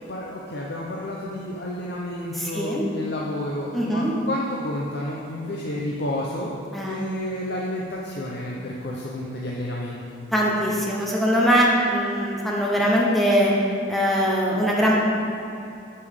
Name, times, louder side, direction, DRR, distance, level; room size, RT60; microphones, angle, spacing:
voice 1, 0.1-10.0, left 1 dB, 55° left, -3 dB, 0.7 m, -31 dB
voice 2, 2.3-2.8 3.7-4.1 6.7-7.0 10.3-13.5 13.9-15.0, equal, ahead, -4 dB, 0.8 m, -21 dB
8.3 x 6.9 x 3.5 m, 2.7 s
head